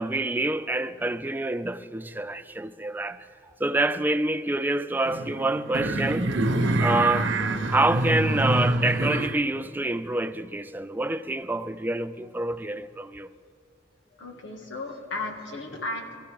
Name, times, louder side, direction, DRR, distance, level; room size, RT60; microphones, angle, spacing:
voice 1, 0.0-3.3 3.6-6.4 6.8-7.3 7.7-13.3, right 2 dB, 10° right, 0.3 m, -27 dB
sound 1, 5.0-9.4, right 1 dB, 80° right, 0.9 m, -26 dB
voice 2, 14.1-16.2, left 2 dB, 90° left, 1.8 m, -35 dB
22.5 x 14.5 x 3.5 m
head